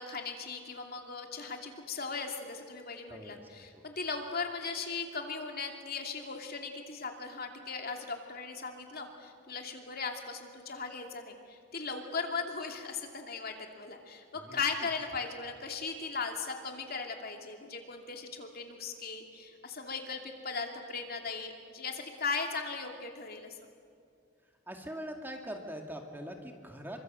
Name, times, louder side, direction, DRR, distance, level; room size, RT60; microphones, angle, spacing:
voice 1, 0.0-23.6, left 4 dB, 50° left, 3 dB, 2.8 m, -38 dB
voice 2, 3.1-3.4 3.7-3.8 14.4-14.6 24.7-27.0, equal, 10° right, 3 dB, 2.3 m, -42 dB
28.5 x 24.5 x 7.7 m, 2.3 s
head